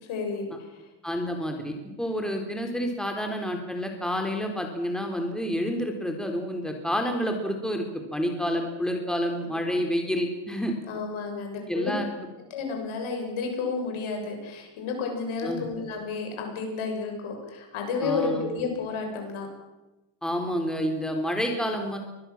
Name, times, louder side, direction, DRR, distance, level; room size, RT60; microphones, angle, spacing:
voice 1, 0.1-0.8 10.9-11.9 12.5-19.5, left 4 dB, 75° left, 2 dB, 7.6 m, -31 dB
voice 2, 1.0-10.7 11.7-12.1 15.4-15.6 18.0-18.4 20.2-22.0, equal, ahead, 3 dB, 4.1 m, -29 dB
24.5 x 20.0 x 7.5 m, 1.0 s
cardioid pair, 120°, 48 cm